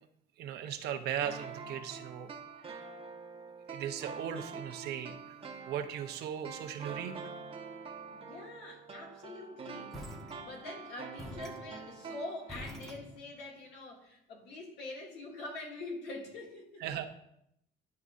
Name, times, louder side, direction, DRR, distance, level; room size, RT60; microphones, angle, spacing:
voice 1, 0.4-2.3 2.6-2.8 3.7-5.1 5.7-7.2 16.8-17.1, right 9 dB, 80° right, 6 dB, 0.8 m, -37 dB
sound 1, 1.2-12.9 13.1-13.2, right 5 dB, 35° right, 0.9 m, -46 dB
voice 2, 8.1-10.0 10.4-16.8, left 2 dB, 80° left, -2 dB, 2.1 m, -44 dB
sound 2, 9.9-10.8 11.2-13.6, equal, ahead, 1.0 m, -47 dB
10.5 x 5.4 x 2.5 m, 0.75 s
cardioid pair, 110°, 17 cm